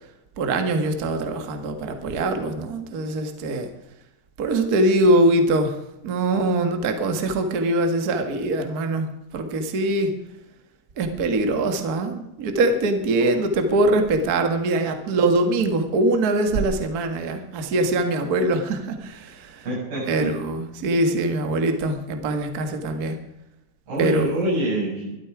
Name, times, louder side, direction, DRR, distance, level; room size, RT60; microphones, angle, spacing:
voice 1, 0.4-3.7 4.4-5.7 6.0-9.1 9.3-10.1 11.0-19.6 20.1-23.2 24.0-24.3, right 2 dB, 90° right, 6 dB, 0.8 m, -22 dB
voice 2, 19.6-20.3 23.9-25.2, right 1 dB, 55° right, -5 dB, 9.4 m, -25 dB
22.5 x 12.5 x 4.9 m, 0.92 s
omnidirectional pair, 4.6 m